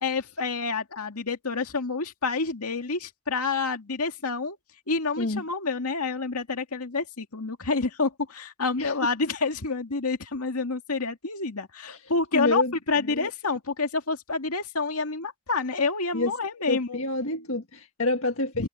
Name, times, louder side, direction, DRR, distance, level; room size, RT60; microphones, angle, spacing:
voice 1, 0.0-4.6 4.9-12.6 12.9-17.0 18.6-18.7, left 4 dB, 90° left, 2.2 m, -28 dB
voice 2, 11.9-12.7 13.0-13.3 16.1-16.3 16.7-18.7, left 2 dB, 70° left, 1.6 m, -28 dB
head